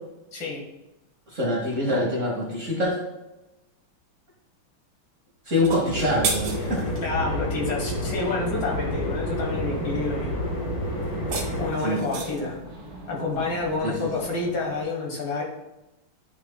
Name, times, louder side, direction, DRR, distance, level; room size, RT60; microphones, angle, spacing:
voice 1, 0.3-0.6 7.0-10.3 11.6-12.6 13.1-15.4, left 3 dB, 60° left, -1 dB, 1.9 m, -29 dB
voice 2, 1.3-3.0 5.5-6.8 11.8-12.0 13.8-13.9, left 1 dB, 40° right, -3 dB, 1.4 m, -24 dB
sound 1, 5.5-7.1 11.0-12.5, right 5 dB, 65° right, 1.5 m, -32 dB
sound 2, 5.9-11.7, left 1 dB, 90° left, 2.5 m, -29 dB
sound 3, 7.6-14.8, right 1 dB, 20° right, 0.9 m, -40 dB
9.0 x 5.7 x 2.2 m, 0.97 s
omnidirectional pair, 2.3 m